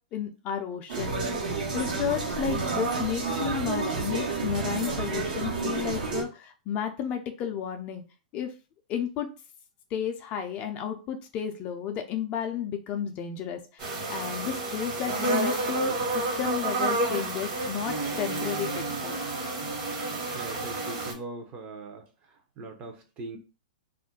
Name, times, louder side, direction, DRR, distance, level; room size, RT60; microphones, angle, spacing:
voice 1, 0.1-1.2 1.7-8.0 8.3-8.5 8.9-9.3 9.9-19.2, left 8 dB, 30° left, 4 dB, 0.4 m, -32 dB
sound 1, 0.9-6.2, right 4 dB, 70° right, 1.0 m, -30 dB
sound 2, 13.8-21.1, right 2 dB, 45° right, 1.2 m, -30 dB
voice 2, 20.3-22.0 22.6-23.4, right 2 dB, 30° right, 3 dB, 0.6 m, -40 dB
2.4 x 2.1 x 3.7 m, 0.33 s
hypercardioid pair, 140°, 5 cm